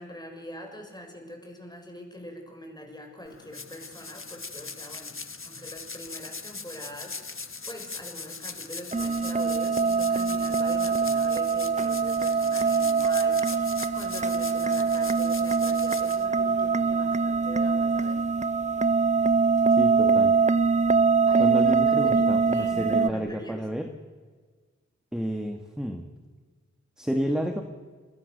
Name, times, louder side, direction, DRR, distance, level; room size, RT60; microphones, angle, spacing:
voice 1, 0.0-18.3 21.3-23.6, left 1 dB, 15° left, 2 dB, 6.6 m, -43 dB
sound 1, 3.3-16.8, left 4 dB, 45° left, 1.3 m, -41 dB
sound 2, 8.9-23.1, right 5 dB, 25° right, 0.7 m, -23 dB
voice 2, 19.8-20.4 21.4-23.9 25.1-26.1 27.0-27.6, equal, ahead, 4 dB, 2.0 m, -30 dB
28.0 x 22.0 x 6.8 m, 1.5 s
wide cardioid pair, 60°, 30 cm